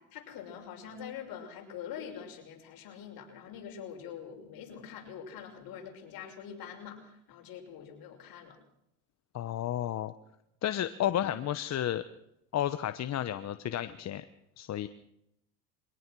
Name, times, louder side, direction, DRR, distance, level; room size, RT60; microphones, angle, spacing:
voice 1, 0.1-8.6, left 8 dB, 55° left, 2 dB, 6.4 m, -44 dB
voice 2, 9.3-10.1 10.6-12.0 12.5-14.2 14.6-14.9, left 11 dB, 40° left, 11 dB, 1.0 m, -32 dB
23.5 x 18.0 x 6.2 m, 0.80 s
supercardioid pair, 110°, 41 cm